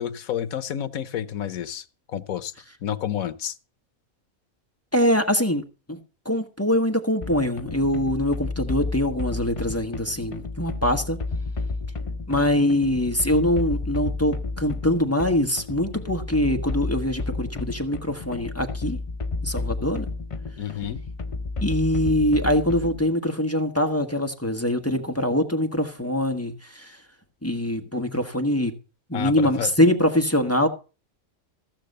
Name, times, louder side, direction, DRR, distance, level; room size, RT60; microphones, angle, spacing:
voice 1, 0.0-2.5 2.8-3.6 20.6-21.0 29.1-29.7, left 10 dB, 85° left, 1.3 m, -30 dB
voice 2, 4.9-5.6 5.9-6.0 6.2-11.2 12.3-19.0 19.4-20.1 21.6-27.0 27.4-28.7 29.1-30.7, left 1 dB, 10° left, 1.3 m, -23 dB
sound 1, 7.2-23.1, left 3 dB, 40° left, 0.4 m, -31 dB
15.5 x 6.8 x 6.6 m
omnidirectional pair, 1.4 m